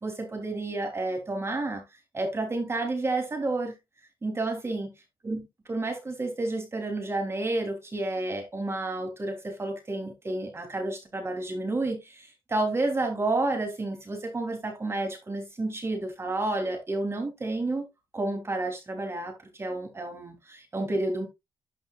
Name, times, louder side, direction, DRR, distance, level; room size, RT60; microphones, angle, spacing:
voice 1, 0.0-1.8 2.1-3.7 4.2-4.9 5.2-5.4 5.7-17.9 18.1-19.3 19.6-21.3, right 2 dB, 30° right, 2.9 m, -30 dB
12.0 x 5.2 x 2.3 m
cardioid pair, 80°, 9 cm